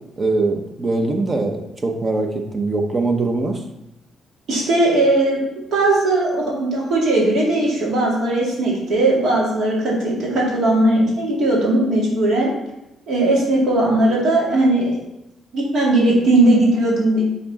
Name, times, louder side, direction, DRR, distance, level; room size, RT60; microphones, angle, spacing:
voice 1, 0.2-3.6, right 3 dB, 30° right, 4 dB, 0.9 m, -22 dB
voice 2, 4.5-5.4 5.7-12.5 13.1-15.0 15.5-17.2, right 2 dB, 65° right, -4 dB, 2.2 m, -18 dB
5.9 x 3.8 x 4.2 m, 0.90 s
cardioid pair, 90°, 0 cm